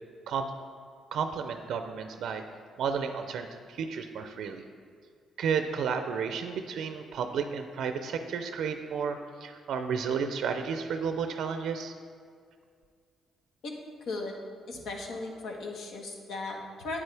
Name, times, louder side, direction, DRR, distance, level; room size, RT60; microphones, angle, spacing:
voice 1, 1.1-2.4 2.8-4.6 5.4-11.9, right 6 dB, 75° right, 7 dB, 0.5 m, -32 dB
voice 2, 14.7-17.0, left 3 dB, 75° left, 1 dB, 1.3 m, -37 dB
8.8 x 8.2 x 3.4 m, 2.1 s
cardioid pair, 90°, 0 cm